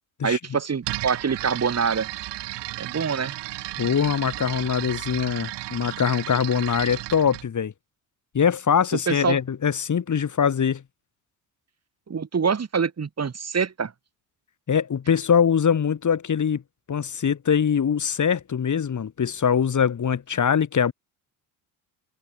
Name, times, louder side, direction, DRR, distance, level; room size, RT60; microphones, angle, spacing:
voice 1, 0.2-2.1 2.8-3.3 9.1-9.4 12.1-13.9, right 6 dB, 35° right, 6.9 m, -25 dB
sound 1, 0.8-7.5, right 18 dB, 70° right, 4.6 m, -34 dB
voice 2, 3.8-7.7 8.3-10.8 14.7-16.6 16.9-20.9, left 7 dB, 40° left, 6.6 m, -23 dB
hypercardioid pair, 65°, 44 cm